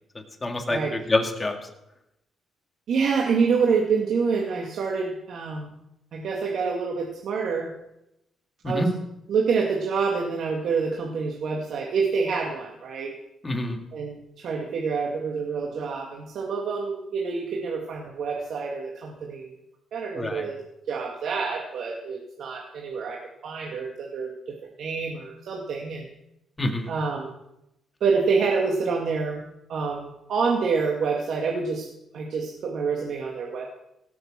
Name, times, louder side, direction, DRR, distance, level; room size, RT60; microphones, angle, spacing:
voice 1, 0.1-1.7 8.6-8.9 13.4-13.8 20.1-20.5 26.6-26.9, left 1 dB, 20° left, 3 dB, 2.8 m, -27 dB
voice 2, 2.9-5.7 6.1-7.7 8.6-8.8 9.3-13.1 13.9-19.6 19.9-20.6 20.9-26.1 26.9-27.3 28.0-29.4 29.7-31.9 32.1-33.6, right 5 dB, 65° right, -1 dB, 2.4 m, -27 dB
17.5 x 7.7 x 7.7 m, 0.84 s
cardioid pair, 90°, 0 cm